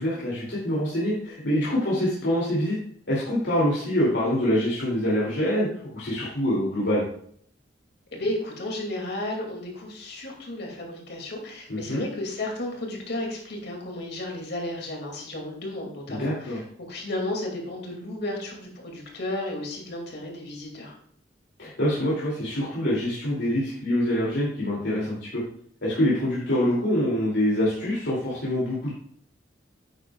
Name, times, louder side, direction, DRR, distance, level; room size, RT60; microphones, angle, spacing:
voice 1, 0.0-2.8 3.1-5.7 5.9-7.0 11.7-12.0 16.1-16.6 21.6-25.4 25.8-28.9, left 1 dB, 85° left, -7 dB, 2.6 m, -25 dB
voice 2, 8.1-21.0, left 1 dB, 60° left, 0 dB, 2.3 m, -33 dB
9.6 x 9.2 x 2.3 m, 0.63 s
head